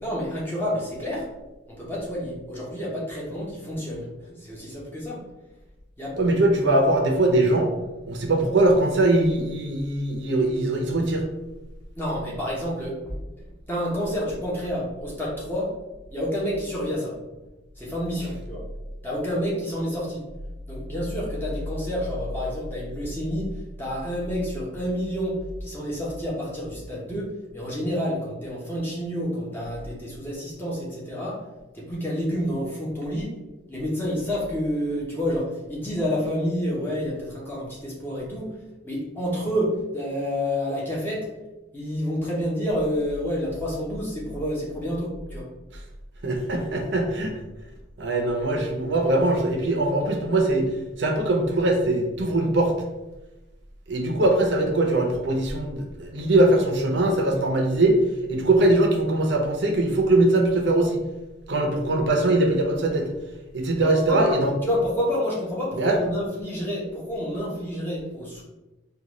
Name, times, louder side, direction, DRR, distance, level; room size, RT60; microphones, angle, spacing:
voice 1, 0.0-1.3 1.7-4.1 4.4-5.2 6.0-6.2 12.0-13.1 13.7-15.8 16.1-17.2 17.8-18.6 19.0-20.2 20.7-31.4 31.7-33.3 33.7-38.5 38.8-41.3 41.7-45.5 63.8-68.4, equal, 10° left, -6 dB, 0.8 m, -29 dB
voice 2, 6.2-7.7 8.1-11.2 46.2-47.3 48.0-50.7 51.0-52.7 53.9-58.0 58.3-61.0 61.5-63.1 63.5-64.5 65.7-66.0, right 2 dB, 60° right, 2 dB, 0.6 m, -21 dB
3.7 x 2.3 x 3.0 m, 1.0 s
head